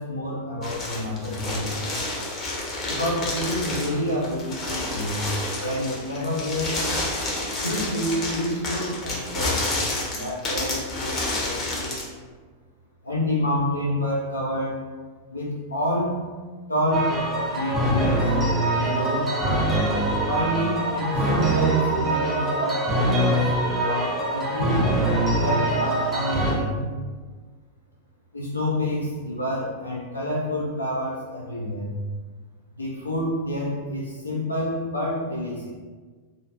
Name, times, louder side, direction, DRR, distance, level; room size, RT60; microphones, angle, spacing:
voice 1, 0.0-1.8 2.8-5.3 5.6-6.8 7.6-9.7 10.1-12.1 13.0-14.8 15.3-16.2 16.7-17.2 17.5-18.3 18.8-19.8 20.2-24.8 25.4-26.9 28.3-32.0 32.7-35.7, left 1 dB, 80° left, -4 dB, 0.3 m, -28 dB
sound 1, 0.6-12.1, left 2 dB, 30° left, 0.7 m, -29 dB
sound 2, 16.9-26.5, right 1 dB, 15° right, 0.5 m, -23 dB
2.5 x 2.4 x 2.3 m, 1.4 s
figure-of-eight pair, 90°, 0 cm